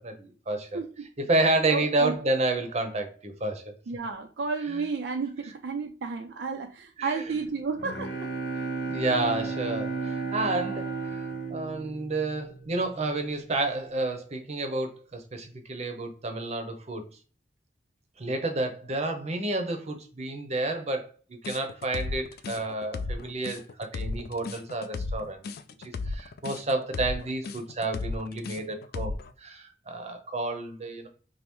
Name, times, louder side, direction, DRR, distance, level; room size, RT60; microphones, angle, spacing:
voice 1, 0.0-0.8 1.3-3.7 4.7-4.8 7.0-7.2 8.9-17.0 18.2-21.1 21.4-25.4 25.8-31.1, right 2 dB, 40° right, 0.7 m, -30 dB
voice 2, 0.7-1.1 1.7-2.1 3.9-8.3, right 4 dB, 70° right, 0.4 m, -32 dB
Bowed string instrument, 7.5-12.9, right 4 dB, 85° left, 0.9 m, -33 dB
sound 1, 21.4-29.3, left 3 dB, 60° left, 0.3 m, -34 dB
5.3 x 2.0 x 3.0 m
head